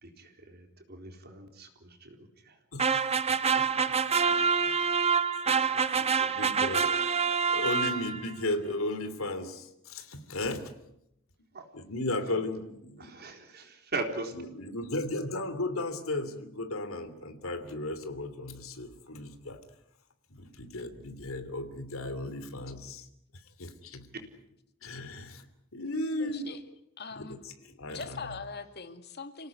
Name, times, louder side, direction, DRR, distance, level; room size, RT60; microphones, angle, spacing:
voice 1, 0.0-2.2 4.7-4.9 6.2-6.3 11.5-11.6 13.0-14.3, right 3 dB, 50° right, 4 dB, 4.0 m, -39 dB
voice 2, 2.7-3.2 3.5-3.9 4.2-4.3 5.9-6.0 6.3-6.9 7.5-10.7 11.7-13.1 14.3-19.6 20.3-23.1 23.6-24.1 24.8-25.4 25.7-26.5 27.2-28.3, left 2 dB, 90° left, 9 dB, 3.0 m, -35 dB
sound 1, 2.8-8.3, right 6 dB, 30° right, 1.2 m, -26 dB
voice 3, 26.2-26.6 27.0-27.4 27.9-29.5, left 4 dB, 55° left, 8 dB, 2.4 m, -41 dB
28.0 x 18.0 x 9.6 m, 0.81 s
head